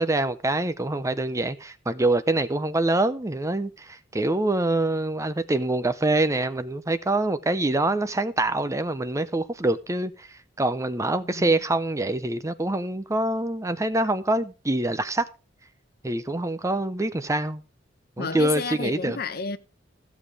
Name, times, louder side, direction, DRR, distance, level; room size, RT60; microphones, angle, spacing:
voice 1, 0.0-10.3 10.6-15.3 16.0-17.6 18.2-19.2, right 2 dB, 15° right, 0.6 m, -25 dB
voice 2, 18.2-19.6, left 4 dB, 55° left, 0.9 m, -31 dB
15.0 x 7.1 x 4.8 m
head